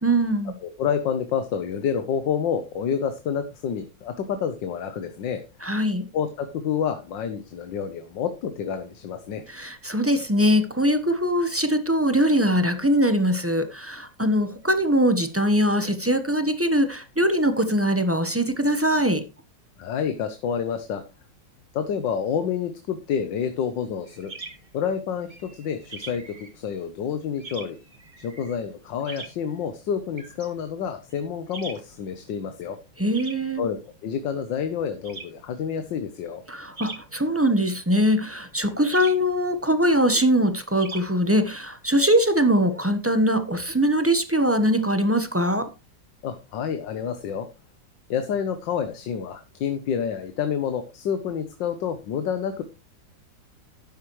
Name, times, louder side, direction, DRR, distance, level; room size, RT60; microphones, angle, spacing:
voice 1, 0.0-0.5 5.6-6.1 9.5-19.2 33.0-33.7 36.5-45.7, equal, 10° right, 0.7 m, -22 dB
voice 2, 0.6-5.4 6.1-9.4 19.8-21.0 21.7-24.3 24.7-27.8 28.2-32.8 33.6-36.4 46.2-47.5 48.1-52.6, left 7 dB, 85° left, 1.7 m, -28 dB
sound 1, 24.1-41.7, right 3 dB, 25° right, 1.6 m, -44 dB
12.5 x 9.5 x 3.1 m
omnidirectional pair, 1.9 m